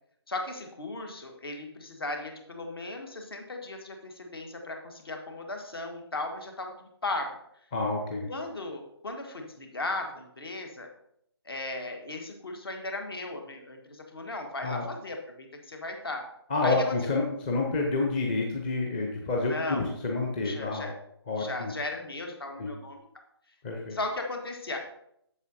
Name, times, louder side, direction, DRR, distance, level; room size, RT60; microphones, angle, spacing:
voice 1, 0.3-6.7 7.0-7.3 8.3-10.9 11.4-16.2 16.6-17.1 19.4-19.9 20.4-20.9 21.4-23.0 23.9-24.8, left 2 dB, 60° left, 4 dB, 1.5 m, -36 dB
voice 2, 7.7-8.3 14.6-14.8 16.5-20.9 21.3-21.7 22.6-22.7 23.6-23.9, left 3 dB, 20° left, 0 dB, 0.7 m, -29 dB
8.0 x 7.1 x 2.7 m, 0.72 s
figure-of-eight pair, 150°, 14 cm